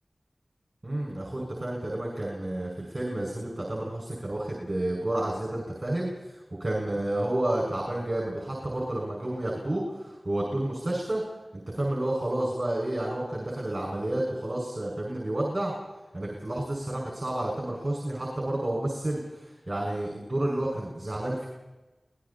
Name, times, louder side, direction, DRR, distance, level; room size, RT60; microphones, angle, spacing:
voice 1, 0.8-6.1 6.6-11.2 11.7-15.7 16.1-21.5, right 1 dB, 35° right, -2 dB, 6.5 m, -30 dB
30.0 x 20.0 x 4.4 m, 1.1 s
wide cardioid pair, 45°, 0 cm